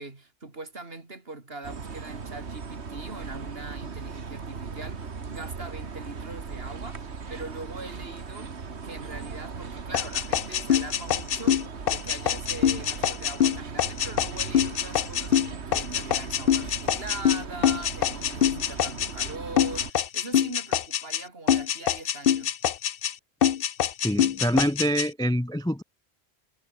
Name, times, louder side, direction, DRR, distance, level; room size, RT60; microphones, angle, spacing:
voice 1, 0.0-8.5 8.8-22.6, right 3 dB, 65° right, 3.3 m, -41 dB
sound 1, 1.6-19.9, right 5 dB, 80° right, 2.0 m, -38 dB
sound 2, 9.9-19.3 19.6-21.2 21.5-23.1 23.4-25.1, left 9 dB, 60° left, 0.9 m, -24 dB
voice 2, 24.0-25.8, equal, 5° left, 0.4 m, -25 dB
omnidirectional pair, 1.1 m